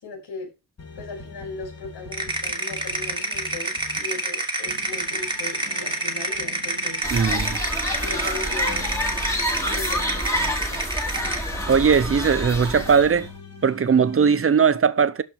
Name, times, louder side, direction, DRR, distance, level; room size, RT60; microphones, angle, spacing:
voice 1, 0.0-0.5 1.0-7.0 8.0-9.0 9.6-10.9, left 3 dB, 70° left, 5.7 m, -37 dB
sound 1, 0.8-4.2 4.6-10.2 10.6-14.5, left 3 dB, 35° left, 3.4 m, -43 dB
sound 2, 2.1-11.5, right 2 dB, 10° right, 2.1 m, -28 dB
sound 3, 7.0-13.3, equal, 5° left, 2.5 m, -27 dB
voice 2, 7.1-7.6 11.7-13.3 13.6-15.2, right 6 dB, 30° right, 0.7 m, -19 dB
12.5 x 5.1 x 5.9 m
wide cardioid pair, 175°, 42 cm